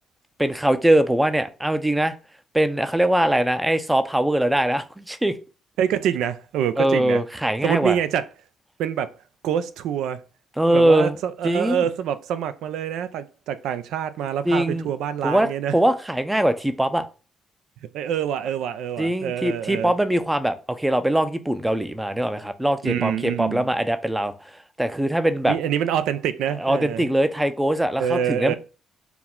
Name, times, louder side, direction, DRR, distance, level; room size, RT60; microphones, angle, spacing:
voice 1, 0.4-2.1 2.5-5.4 6.8-8.0 10.6-11.2 11.4-11.9 14.4-14.9 15.2-17.0 19.0-24.3 24.8-25.5 26.6-28.5, right 1 dB, 10° right, 0.4 m, -22 dB
voice 2, 5.8-7.2 7.6-8.3 8.8-9.1 9.4-10.2 10.7-15.7 17.9-19.9 22.8-23.7 25.4-27.1 28.0-28.5, right 9 dB, 85° right, 0.3 m, -26 dB
4.6 x 2.1 x 3.6 m
cardioid pair, 90°, 0 cm